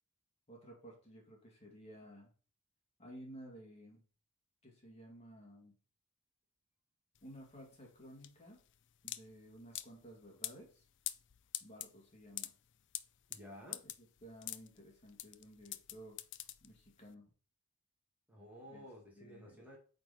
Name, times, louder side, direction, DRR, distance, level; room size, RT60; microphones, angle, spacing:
voice 1, 0.5-2.3 3.0-4.0 4.6-5.7 7.2-8.6 9.0-10.8 11.6-12.5 13.8-16.2 16.6-17.3 18.7-18.9 19.2-19.6, equal, 30° left, -1 dB, 2.2 m, -55 dB
sound 1, 7.2-17.1, left 14 dB, 55° left, 0.5 m, -46 dB
voice 2, 13.3-13.8 18.3-19.8, equal, 5° right, -3 dB, 1.9 m, -53 dB
8.6 x 4.0 x 4.2 m, 0.39 s
head